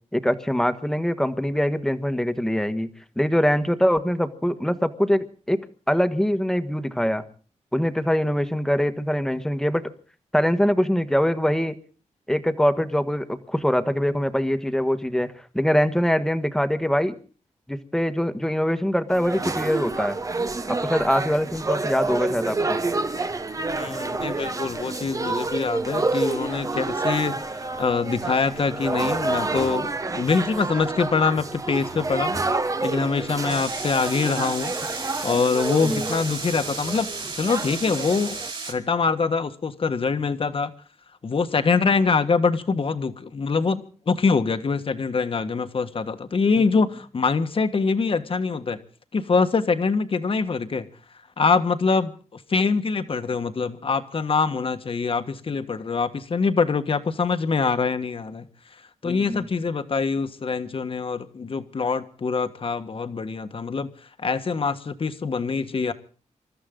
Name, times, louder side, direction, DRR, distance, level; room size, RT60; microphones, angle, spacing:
voice 1, 0.1-2.9 3.2-7.2 7.7-9.9 10.3-11.8 12.3-17.2 17.7-20.2 20.7-22.8 35.8-36.1 59.0-59.4, equal, 5° left, 1.4 m, -23 dB
sound 1, 19.1-38.5, right 3 dB, 25° right, 1.0 m, -28 dB
voice 2, 23.7-27.3 27.8-32.4 32.8-34.7 35.2-37.1 37.3-38.4 38.7-40.7 41.2-48.8 49.1-50.9 51.4-58.4 59.0-63.9 64.2-65.9, left 4 dB, 45° left, 1.5 m, -24 dB
sound 2, 33.5-38.7, right 4 dB, 45° right, 4.7 m, -34 dB
27.0 x 13.5 x 3.8 m
wide cardioid pair, 120°, 13 cm